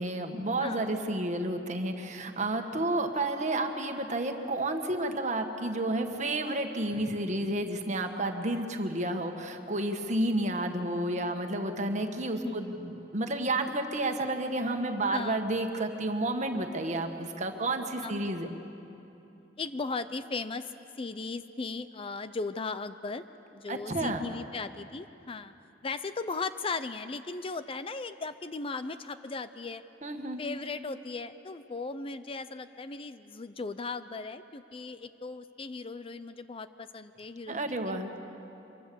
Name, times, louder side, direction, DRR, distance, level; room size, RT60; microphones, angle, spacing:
voice 1, 0.0-18.5 23.7-24.2 30.0-30.4 37.5-38.1, right 2 dB, 40° right, 5 dB, 1.6 m, -31 dB
voice 2, 12.4-12.8 15.1-15.4 18.0-18.6 19.6-23.2 23.5-25.5 25.8-29.8 30.4-38.0, left 4 dB, 30° left, 12 dB, 0.5 m, -37 dB
25.5 x 23.0 x 7.0 m, 2.9 s
head